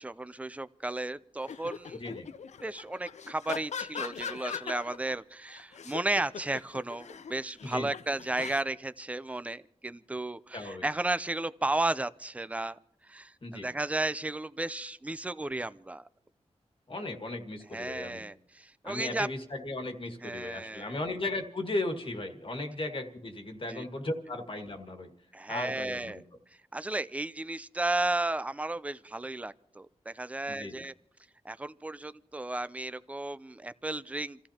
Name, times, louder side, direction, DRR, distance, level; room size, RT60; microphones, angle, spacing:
voice 1, 0.0-2.0 2.6-12.8 13.1-16.0 17.7-19.3 20.2-21.0 23.7-23.8 25.3-26.2 26.7-30.9 31.4-34.4, right 2 dB, 10° right, 15 dB, 0.5 m, -34 dB
sound 1, 1.4-5.1 5.5-8.6, left 6 dB, 80° left, 0.5 m, -40 dB
voice 2, 1.9-2.3 7.7-7.9 10.5-10.9 13.4-13.7 16.9-18.2 18.8-25.1 25.5-26.2 30.5-30.8, left 2 dB, 45° left, 5 dB, 1.8 m, -36 dB
29.0 x 14.5 x 2.9 m, 0.75 s
wide cardioid pair, 85°, 12 cm